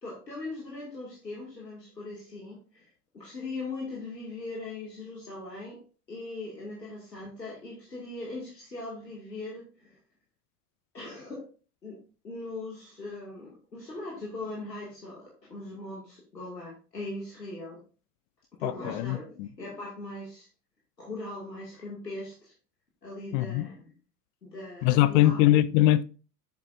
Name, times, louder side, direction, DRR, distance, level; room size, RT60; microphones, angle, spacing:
voice 1, 0.0-5.8 6.1-10.0 10.9-11.5 11.8-12.0 12.2-17.8 18.6-20.5 21.0-22.5 23.0-23.9 24.4-25.6, left 2 dB, 90° left, 2.4 m, -40 dB
voice 2, 18.6-19.5 23.3-23.7 24.8-26.0, left 14 dB, 35° left, 0.4 m, -22 dB
9.4 x 7.3 x 2.6 m
figure-of-eight pair, 75°, 48 cm